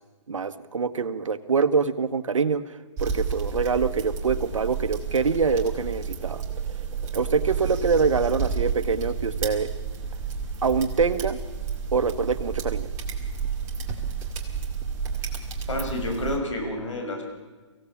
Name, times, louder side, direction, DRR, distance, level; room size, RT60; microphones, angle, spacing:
voice 1, 0.3-2.6 3.0-6.4 7.1-9.7 10.6-11.4 11.9-12.9, right 5 dB, 75° right, 11 dB, 1.3 m, -24 dB
sound 1, 3.0-16.4, right 6 dB, 20° right, 2.0 m, -31 dB
voice 2, 15.7-17.2, left 1 dB, 70° left, 2 dB, 6.1 m, -29 dB
24.5 x 16.0 x 7.3 m, 1.3 s
hypercardioid pair, 155°, 16 cm